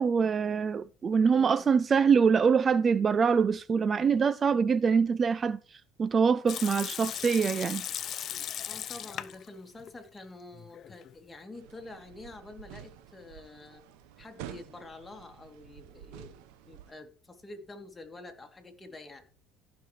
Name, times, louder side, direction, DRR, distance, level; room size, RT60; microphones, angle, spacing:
voice 1, 0.0-7.9, right 6 dB, 35° right, 0.4 m, -24 dB
voice 2, 1.3-1.6 8.7-13.8 14.2-19.2, left 2 dB, 15° left, 2.7 m, -47 dB
Water tap faucet / Sink (filling or washing) / Liquid, 6.5-9.5 9.8-9.9 10.5-11.1, left 10 dB, 50° left, 0.7 m, -37 dB
sound 1, 11.5-16.9, right 11 dB, 80° right, 1.0 m, -49 dB
15.0 x 5.9 x 3.2 m
supercardioid pair, 100°, 0 cm